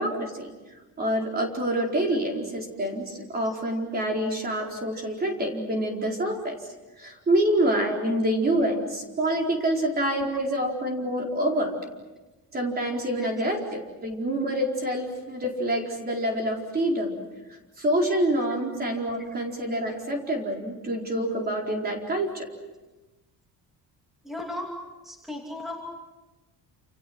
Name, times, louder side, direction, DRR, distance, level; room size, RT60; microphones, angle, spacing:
voice 1, 0.0-6.6 7.0-11.8 12.5-17.1 17.8-22.5, right 1 dB, 25° right, 1 dB, 4.5 m, -27 dB
voice 2, 24.2-24.7 25.0-25.8, left 1 dB, ahead, 0 dB, 2.9 m, -36 dB
29.5 x 29.0 x 6.2 m, 1.1 s
cardioid pair, 180°, 38 cm